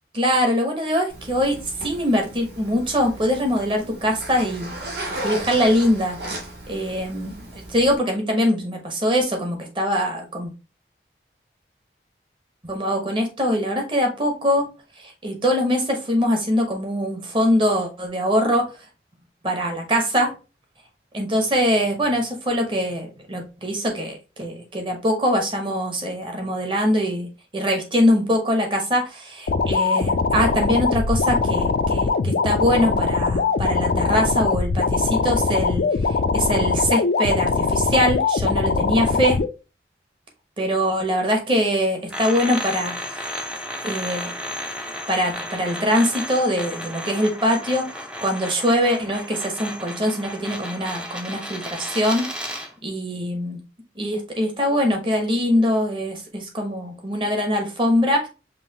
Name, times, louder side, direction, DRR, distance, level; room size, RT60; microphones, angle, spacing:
voice 1, 0.1-4.7 5.2-6.2 6.7-7.3 7.7-10.5 12.6-14.7 15.0-18.7 19.4-20.3 21.1-35.9 36.3-39.4 40.6-43.4 43.8-44.3 45.1-47.9 48.2-52.3 52.8-53.6 54.0-58.3, equal, 25° right, 3 dB, 0.9 m, -23 dB
Zipper (clothing), 1.1-8.0, right 1 dB, 70° right, 1.7 m, -35 dB
sound 1, 29.5-39.5, left 4 dB, 60° left, 0.3 m, -21 dB
sound 2, 42.1-52.7, equal, 5° right, 0.4 m, -33 dB
5.4 x 2.5 x 2.7 m, 0.30 s
head